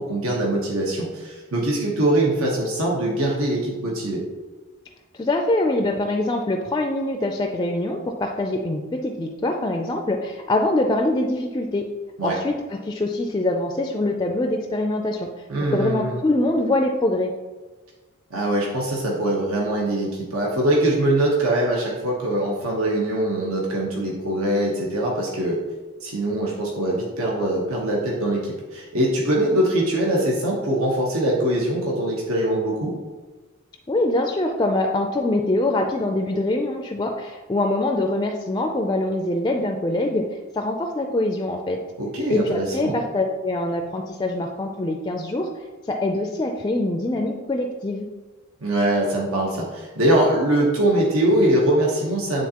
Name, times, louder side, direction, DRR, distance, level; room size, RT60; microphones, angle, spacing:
voice 1, 0.0-4.2 12.2-12.4 15.5-16.2 18.3-25.6 26.0-33.0 42.0-42.9 48.6-52.5, right 1 dB, 85° right, -3 dB, 1.1 m, -22 dB
voice 2, 5.2-11.9 12.2-15.3 15.7-17.3 33.9-40.3 40.5-41.8 42.3-45.5 45.9-48.0, left 2 dB, 20° left, 3 dB, 0.3 m, -24 dB
9.3 x 3.8 x 2.9 m, 1.3 s
head